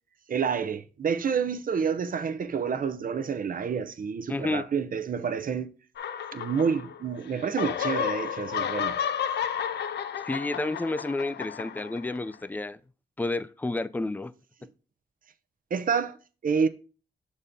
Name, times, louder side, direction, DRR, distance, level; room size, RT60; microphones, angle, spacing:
voice 1, 0.3-5.7 6.3-9.0 15.7-16.2 16.4-16.7, right 6 dB, 55° right, 0.7 m, -28 dB
voice 2, 4.3-4.6 10.2-12.8 13.2-14.3, left 2 dB, 10° left, 0.4 m, -30 dB
sound 1, 6.0-7.1 7.4-12.3, left 8 dB, 80° left, 0.5 m, -32 dB
6.7 x 4.2 x 3.6 m
cardioid pair, 90°, 17 cm